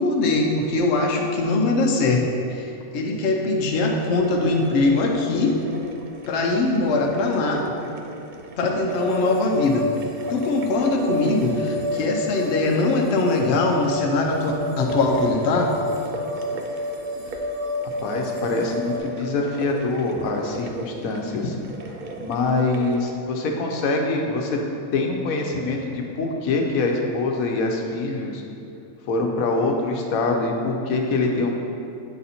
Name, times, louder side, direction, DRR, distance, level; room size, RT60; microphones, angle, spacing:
voice 1, 0.0-5.6 6.3-7.6 8.6-9.9 10.3-15.8, left 2 dB, 60° left, 1 dB, 0.9 m, -22 dB
sound 1, 3.8-23.0, right 3 dB, 85° right, 0.4 m, -39 dB
sound 2, 8.9-19.0, left 1 dB, 30° right, 0.6 m, -30 dB
voice 2, 18.0-21.6 22.2-24.6 24.9-28.4 29.1-31.6, left 3 dB, 80° left, 1 dB, 1.1 m, -24 dB
8.2 x 4.0 x 4.2 m, 2.7 s
omnidirectional pair, 1.4 m